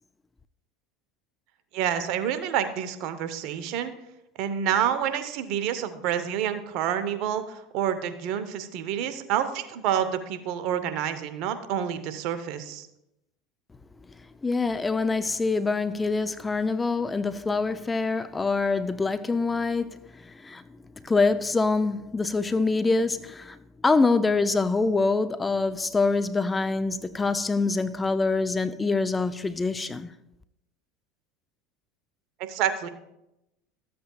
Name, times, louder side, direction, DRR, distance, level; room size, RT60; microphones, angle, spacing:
voice 1, 1.7-3.9 4.4-12.9 32.5-32.9, right 9 dB, 60° right, 0.8 m, -28 dB
voice 2, 14.4-20.6 21.0-23.6 23.8-30.1, left 3 dB, 15° left, 0.4 m, -25 dB
13.5 x 7.7 x 2.3 m
hypercardioid pair, 85°, 0 cm